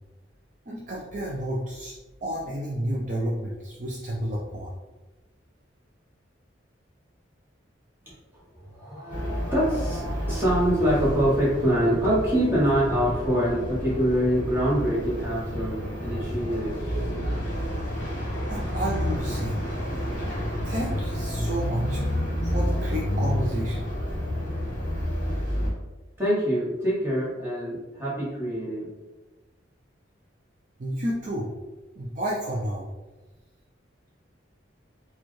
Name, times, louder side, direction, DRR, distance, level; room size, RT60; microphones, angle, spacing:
voice 1, 0.7-1.9 2.2-4.7 18.5-19.8 20.6-22.0 22.4-23.9 30.8-31.5 32.0-32.9, right 1 dB, 40° right, -4 dB, 0.5 m, -31 dB
voice 2, 8.8-16.8 26.2-28.9, equal, 10° right, -7 dB, 1.2 m, -25 dB
sound 1, 9.1-25.7, equal, 45° left, 1.1 m, -29 dB
4.3 x 2.4 x 3.1 m, 1.1 s
head